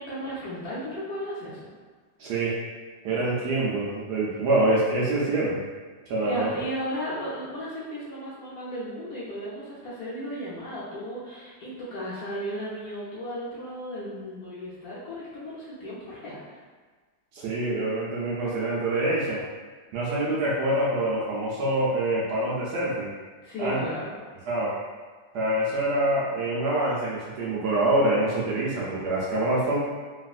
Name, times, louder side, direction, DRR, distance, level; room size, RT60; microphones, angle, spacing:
voice 1, 0.0-1.7 6.2-16.4 23.4-24.1, equal, 65° left, -9 dB, 0.9 m, -35 dB
voice 2, 2.2-2.5 3.0-5.6 6.1-6.5 17.3-19.4 19.9-23.1 23.6-23.9 24.5-24.8 25.3-29.8, right 1 dB, 70° right, -6 dB, 1.0 m, -25 dB
3.3 x 2.4 x 2.3 m, 1.4 s
omnidirectional pair, 2.1 m